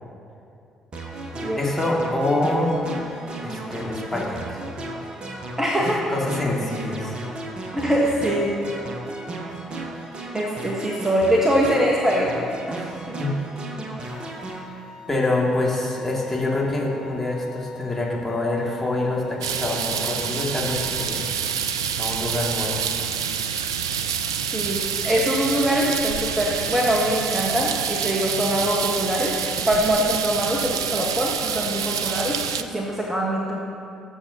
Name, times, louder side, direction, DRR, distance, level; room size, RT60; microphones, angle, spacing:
sound 1, 0.9-14.6, right 2 dB, 40° right, 1.4 m, -35 dB
voice 1, 1.6-2.8 3.4-4.6 5.8-7.2 13.2-13.3 15.1-21.4 22.0-22.9, left 2 dB, 10° left, -4 dB, 2.3 m, -26 dB
voice 2, 5.6-6.0 7.7-8.5 10.3-13.2 24.5-33.6, equal, 15° right, -2 dB, 1.3 m, -23 dB
sound 2, 14.0-21.2, left 5 dB, 75° left, 2.0 m, -45 dB
sound 3, 19.4-32.6, right 7 dB, 75° right, 0.3 m, -27 dB
19.0 x 7.2 x 2.9 m, 2.6 s
figure-of-eight pair, 45°, 3 cm